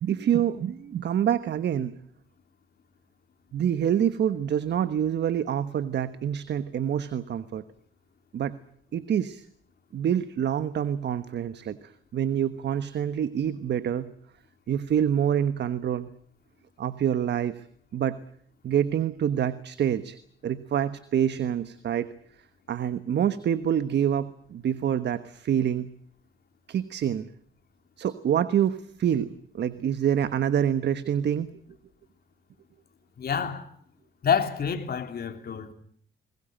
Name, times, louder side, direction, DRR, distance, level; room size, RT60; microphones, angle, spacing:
voice 1, 0.0-1.9 3.5-7.6 8.3-8.6 8.9-9.5 9.9-14.1 14.7-16.1 16.8-17.6 17.9-18.2 18.6-20.2 20.4-22.1 22.7-25.9 26.7-27.3 28.0-31.5, right 9 dB, 60° right, 1.3 m, -26 dB
voice 2, 33.2-33.7 34.2-35.7, left 7 dB, 50° left, 3.4 m, -27 dB
21.5 x 20.5 x 9.1 m
cardioid pair, 90°, 20 cm